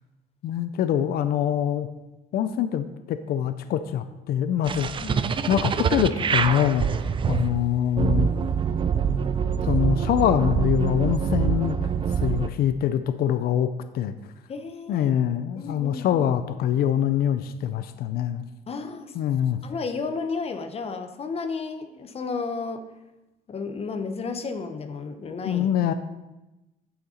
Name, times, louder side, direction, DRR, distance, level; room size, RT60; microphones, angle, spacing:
voice 1, 0.4-1.9 2.3-5.1 5.5-6.9 7.3-8.3 9.6-11.8 12.2-13.7 13.9-14.1 14.9-18.4 19.1-19.6 25.4-25.9, left 9 dB, 65° left, 11 dB, 0.5 m, -24 dB
sound 1, 4.6-12.5, right 7 dB, 30° right, 0.4 m, -25 dB
voice 2, 14.5-15.2 15.6-16.3 18.7-19.1 19.6-22.9 23.5-25.7, left 4 dB, 35° left, 8 dB, 0.9 m, -32 dB
9.1 x 6.8 x 4.3 m, 0.99 s
cardioid pair, 110°, 17 cm